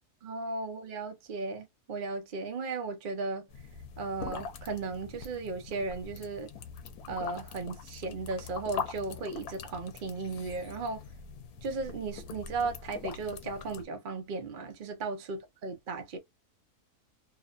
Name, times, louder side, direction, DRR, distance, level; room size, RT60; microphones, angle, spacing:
voice 1, 0.2-3.5 4.0-6.5 7.1-11.0 11.6-16.2, right 3 dB, 50° right, 0.6 m, -36 dB
sound 1, 3.5-13.8, left 6 dB, 85° left, 1.2 m, -43 dB
2.9 x 2.1 x 2.3 m
omnidirectional pair, 1.6 m